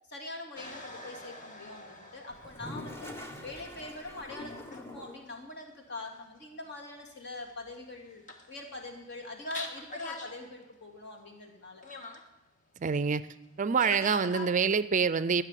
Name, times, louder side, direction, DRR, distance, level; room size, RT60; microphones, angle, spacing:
voice 1, 0.1-3.1 3.4-11.8, left 2 dB, 55° left, 1 dB, 2.6 m, -43 dB
sound 1, 0.6-3.8 4.4-4.9 5.2-5.3 7.7-7.8 8.0-8.8 9.1-9.2 9.5-10.4 10.6-10.7 11.8-12.2 13.8-14.5, left 2 dB, 40° left, 1.5 m, -43 dB
Toilet flush, 2.3-5.4, left 1 dB, 10° left, 1.2 m, -44 dB
voice 2, 12.8-13.2 13.6-15.4, right 5 dB, 35° right, 15 dB, 0.4 m, -26 dB
14.0 x 6.9 x 9.9 m, 0.94 s
head